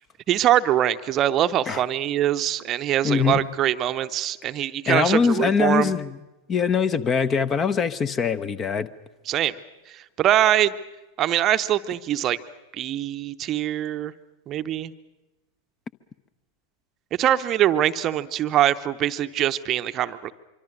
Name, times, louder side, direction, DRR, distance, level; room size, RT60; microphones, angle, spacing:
voice 1, 0.3-5.9 9.3-9.5 9.9-10.7 11.2-12.4 12.7-14.1 14.5-14.9 17.2-20.3, right 12 dB, 30° right, 11 dB, 0.8 m, -23 dB
voice 2, 3.0-3.4 4.9-6.2 6.5-8.9, left 6 dB, 25° left, 16 dB, 0.9 m, -22 dB
25.0 x 24.5 x 6.5 m, 1.0 s
figure-of-eight pair, 90°, 0 cm